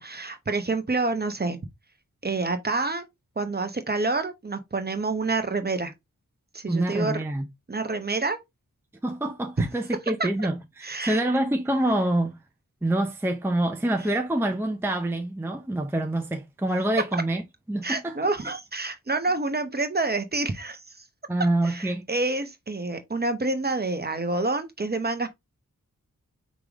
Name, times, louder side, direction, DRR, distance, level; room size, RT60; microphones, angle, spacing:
voice 1, 0.0-1.6 2.2-3.1 3.4-5.9 6.5-7.2 7.7-8.4 10.8-11.2 17.8-20.8 21.6-25.3, right 3 dB, 30° right, 0.9 m, -28 dB
voice 2, 6.7-7.5 9.0-12.4 12.8-17.4 17.7-18.3 21.3-22.0, right 1 dB, 5° right, 0.6 m, -26 dB
5.0 x 3.4 x 2.9 m
wide cardioid pair, 100°, 32 cm